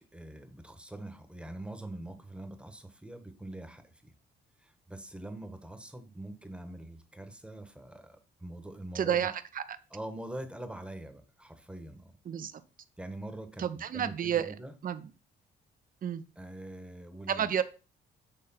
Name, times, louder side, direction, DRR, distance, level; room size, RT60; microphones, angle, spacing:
voice 1, 0.1-4.1 4.6-9.3 9.9-12.1 13.0-14.7 16.4-17.5, right 1 dB, 5° right, 8 dB, 1.1 m, -44 dB
voice 2, 8.9-9.6 12.3-12.5 13.6-14.5 14.8-15.1 16.0-16.2 17.3-17.6, right 9 dB, 45° right, 12 dB, 0.6 m, -30 dB
6.7 x 3.2 x 5.5 m, 0.33 s
cardioid pair, 90°, 20 cm